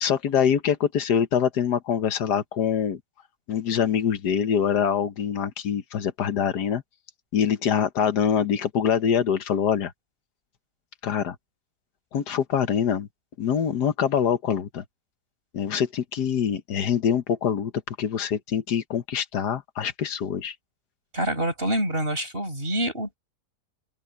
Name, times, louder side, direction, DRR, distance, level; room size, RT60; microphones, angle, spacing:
voice 1, 0.0-3.0 3.5-6.8 7.3-9.9 11.0-11.3 12.1-13.1 13.4-14.8 15.5-20.5, left 8 dB, 80° left, 1.7 m, -24 dB
voice 2, 21.1-23.2, right 1 dB, 35° right, 6.9 m, -26 dB
open air
omnidirectional pair, 1.7 m